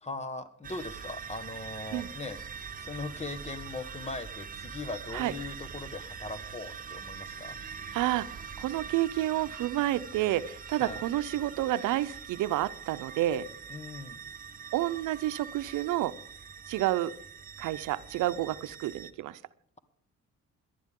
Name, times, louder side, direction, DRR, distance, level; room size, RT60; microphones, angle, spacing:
voice 1, 0.0-7.6 10.8-11.0 13.7-14.2, left 3 dB, 20° left, 10 dB, 1.6 m, -40 dB
sound 1, 0.6-19.1, right 6 dB, 30° right, 1.2 m, -43 dB
voice 2, 7.9-13.5 14.7-16.2 16.7-17.1 17.6-19.4, right 14 dB, 85° right, 14 dB, 0.7 m, -30 dB
18.0 x 12.0 x 3.7 m, 0.64 s
cardioid pair, 90°, 30 cm